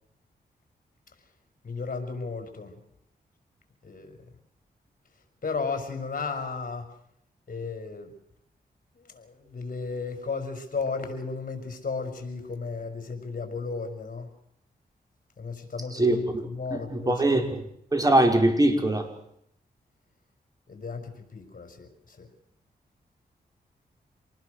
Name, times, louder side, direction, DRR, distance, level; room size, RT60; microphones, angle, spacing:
voice 1, 1.6-2.7 3.8-4.2 5.4-6.9 7.5-8.1 8.9-14.3 15.4-17.5 20.7-22.3, left 4 dB, 55° left, 6 dB, 5.3 m, -34 dB
voice 2, 16.7-17.6 17.9-19.1, right 1 dB, 20° right, 5 dB, 5.3 m, -22 dB
27.0 x 19.5 x 6.6 m, 0.73 s
cardioid pair, 70°, 17 cm